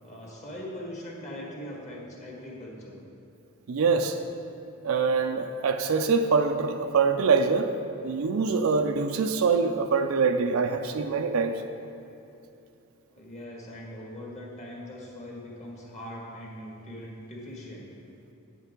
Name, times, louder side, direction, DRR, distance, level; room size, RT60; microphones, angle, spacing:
voice 1, 0.0-3.0 13.1-17.9, left 1 dB, 35° left, -3 dB, 1.8 m, -41 dB
voice 2, 3.7-4.2 4.8-7.7 8.0-11.6, right 5 dB, 70° right, 6 dB, 0.4 m, -24 dB
9.1 x 7.9 x 3.7 m, 2.7 s
head